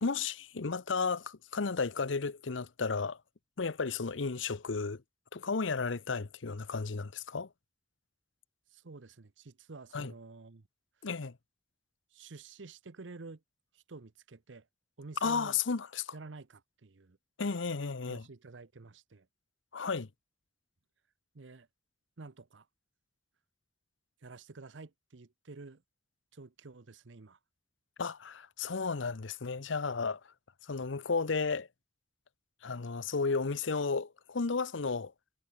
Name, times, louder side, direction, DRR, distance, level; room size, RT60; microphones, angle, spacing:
voice 1, 0.0-3.2 3.6-5.0 5.3-7.5 9.9-10.1 11.0-11.4 15.2-16.1 17.4-18.3 19.7-20.1 28.0-30.2 30.6-31.7 32.6-35.1, left 4 dB, 80° left, 0.8 m, -33 dB
voice 2, 8.7-10.6 12.1-13.4 13.7-14.7 15.0-15.6 16.1-17.2 18.1-19.3 21.3-21.7 22.2-22.7 24.2-25.8 26.3-27.4, right 3 dB, 75° right, 0.8 m, -50 dB
head